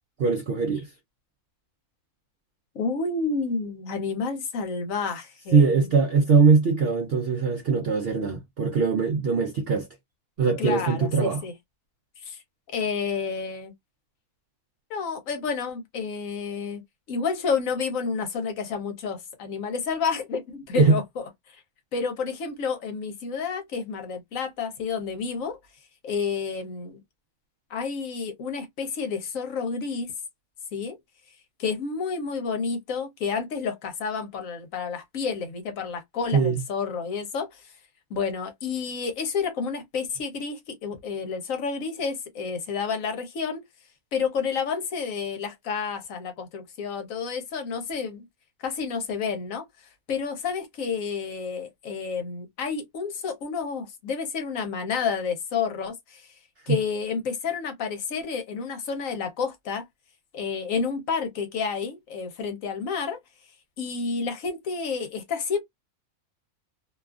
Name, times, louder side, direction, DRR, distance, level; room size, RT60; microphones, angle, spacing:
voice 1, 0.2-0.9 5.5-9.9 10.4-11.4 20.8-21.0 36.3-36.6 56.7-56.8, right 5 dB, 65° right, 0.6 m, -21 dB
voice 2, 2.7-5.9 10.6-11.5 12.2-12.4 12.7-13.7 14.9-16.8 17.1-21.6 21.9-25.6 26.0-27.0 27.7-30.1 30.7-31.0 31.6-37.7 38.1-43.6 44.1-48.3 48.6-49.7 50.1-56.3 56.7-59.8 60.3-63.2 63.8-65.6, left 5 dB, 65° left, 1.0 m, -30 dB
2.7 x 2.3 x 2.3 m
omnidirectional pair, 1.6 m